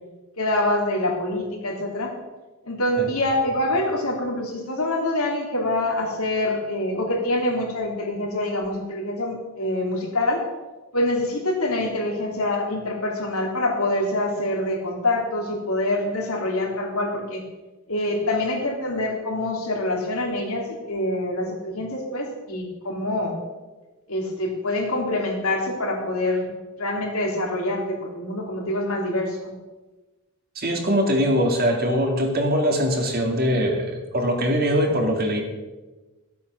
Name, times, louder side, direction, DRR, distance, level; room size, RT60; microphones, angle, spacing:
voice 1, 0.4-2.2 2.7-10.4 10.9-17.4 17.9-23.4 24.1-26.5 26.8-29.5, left 1 dB, 80° left, 0 dB, 3.0 m, -25 dB
voice 2, 30.6-35.4, equal, 45° right, 2 dB, 2.2 m, -22 dB
13.5 x 8.4 x 6.2 m, 1.2 s
head